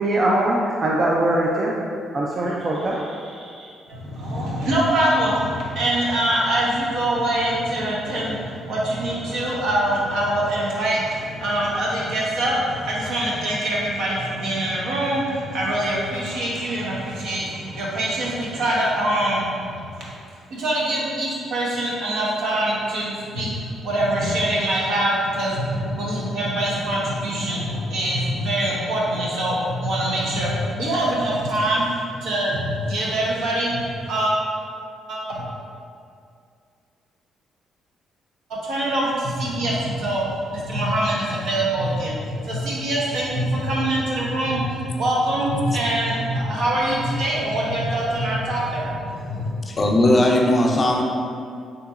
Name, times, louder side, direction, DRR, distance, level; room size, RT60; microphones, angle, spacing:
voice 1, 0.0-1.8 2.1-3.7, right 1 dB, 40° right, -3 dB, 0.3 m, -22 dB
voice 2, 3.9-20.0 20.5-34.3 35.1-35.4 38.5-49.6, right 1 dB, 80° right, -5 dB, 0.7 m, -24 dB
voice 3, 49.7-51.0, left 1 dB, 35° left, 1 dB, 0.4 m, -18 dB
3.8 x 2.8 x 2.4 m, 2.3 s
cardioid pair, 90°, 0 cm